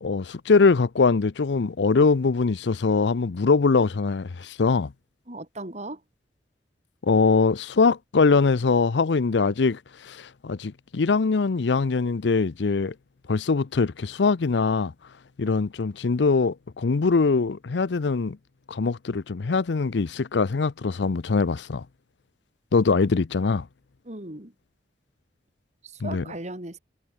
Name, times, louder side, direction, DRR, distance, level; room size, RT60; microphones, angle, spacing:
voice 1, 0.0-4.9 7.0-12.9 13.3-14.9 15.4-18.4 18.7-21.8 22.7-23.7 26.0-26.2, left 4 dB, 80° left, 0.6 m, -22 dB
voice 2, 5.3-6.0 24.0-24.5 25.8-26.8, right 2 dB, 40° right, 3.7 m, -37 dB
head